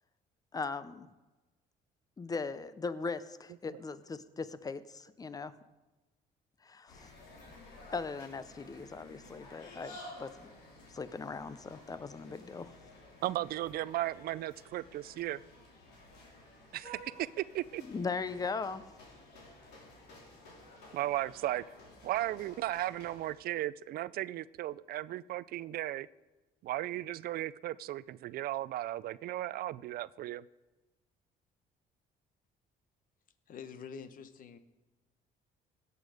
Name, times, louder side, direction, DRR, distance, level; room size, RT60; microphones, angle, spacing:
voice 1, 0.5-1.1 2.2-5.5 6.7-7.1 7.9-10.3 10.9-12.7 17.9-18.9, left 4 dB, 20° left, 15 dB, 0.7 m, -39 dB
sound 1, 6.9-23.3, left 1 dB, 80° left, 3.5 m, -53 dB
voice 2, 13.2-15.4 16.7-17.1 17.4-17.8 20.9-21.6 22.0-26.1 26.6-30.4, right 14 dB, 65° right, 19 dB, 0.4 m, -36 dB
voice 3, 33.5-34.6, left 6 dB, 55° left, 12 dB, 1.0 m, -46 dB
17.0 x 8.2 x 5.0 m, 1.1 s
cardioid pair, 110°, 17 cm